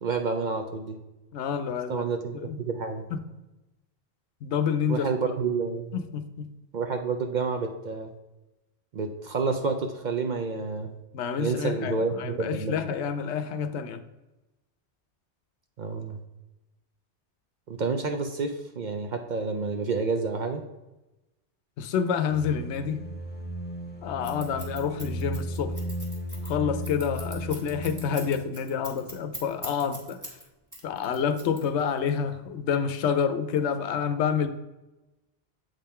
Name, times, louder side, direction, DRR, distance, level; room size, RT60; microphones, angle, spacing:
voice 1, 0.0-1.0 1.9-3.0 4.9-6.0 6.7-8.1 8.9-10.9 11.4-12.8 15.8-16.2 17.7-20.6, right 4 dB, 55° right, 5 dB, 0.5 m, -29 dB
voice 2, 1.3-2.1 2.4-2.6 3.1-3.2 4.4-5.1 5.9-6.5 11.1-14.0 21.8-23.0 24.0-25.7 26.4-30.2 30.8-34.5, left 7 dB, 80° left, 10 dB, 0.9 m, -28 dB
sound 1, 22.3-28.3, right 1 dB, 10° left, 0.8 m, -35 dB
Scissors, 24.2-30.4 30.7-32.0, equal, 15° right, 1.4 m, -41 dB
7.4 x 3.8 x 4.2 m, 1.0 s
omnidirectional pair, 1.1 m